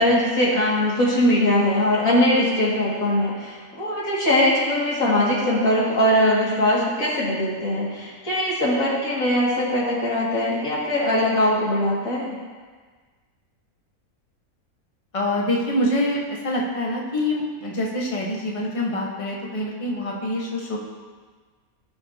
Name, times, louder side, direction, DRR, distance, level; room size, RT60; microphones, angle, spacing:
voice 1, 0.0-12.4, left 1 dB, 65° left, -6 dB, 2.6 m, -21 dB
voice 2, 15.1-20.8, left 1 dB, 25° left, -2 dB, 1.3 m, -25 dB
16.5 x 6.5 x 2.8 m, 1.5 s
omnidirectional pair, 1.6 m